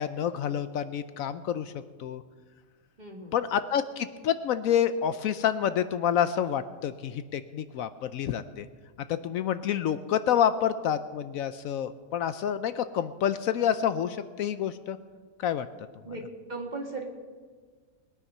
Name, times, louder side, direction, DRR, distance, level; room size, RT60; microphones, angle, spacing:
voice 1, 0.0-1.7 2.0-2.2 3.3-8.7 9.1-15.0 15.4-15.7, left 9 dB, 75° left, 12 dB, 1.0 m, -28 dB
voice 2, 3.0-3.4 16.0-16.2 16.5-17.0, right 3 dB, 30° right, 1 dB, 2.1 m, -37 dB
21.0 x 9.8 x 5.6 m, 1.5 s
omnidirectional pair, 1.5 m